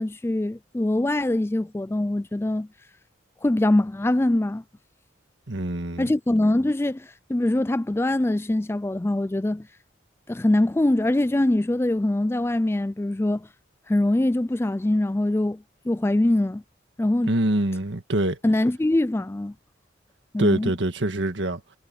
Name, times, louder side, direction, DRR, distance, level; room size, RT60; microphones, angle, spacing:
voice 1, 0.0-2.7 3.4-4.6 6.0-9.7 10.3-13.5 13.9-16.6 17.0-17.3 18.4-19.5 20.3-20.7, left 1 dB, 15° left, 0.3 m, -23 dB
voice 2, 5.5-6.1 17.2-18.4 20.4-21.6, right 1 dB, 75° right, 1.7 m, -24 dB
head